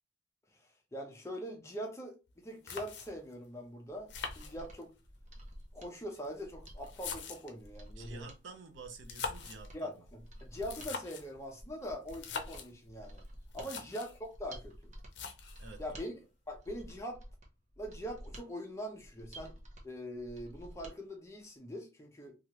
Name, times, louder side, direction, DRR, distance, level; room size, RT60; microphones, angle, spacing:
voice 1, 0.9-4.9 5.7-8.3 9.7-13.2 13.5-14.7 15.8-16.1 16.5-17.2 17.8-19.6 19.8-22.3, equal, 15° left, 0.6 m, -42 dB
sound 1, 2.3-2.4 2.7-3.3 4.1-5.1 6.0-7.7 8.9-9.7 10.5-11.3 12.1-12.7 13.2-13.3 13.5-14.2 15.1-15.7, left 5 dB, 65° left, 0.6 m, -43 dB
Mechanisms, 3.9-21.0 21.3-21.4, equal, 35° right, 0.7 m, -51 dB
voice 2, 8.0-10.0 13.6-13.8 15.6-16.1, right 4 dB, 80° right, 0.6 m, -50 dB
3.2 x 2.4 x 2.9 m
head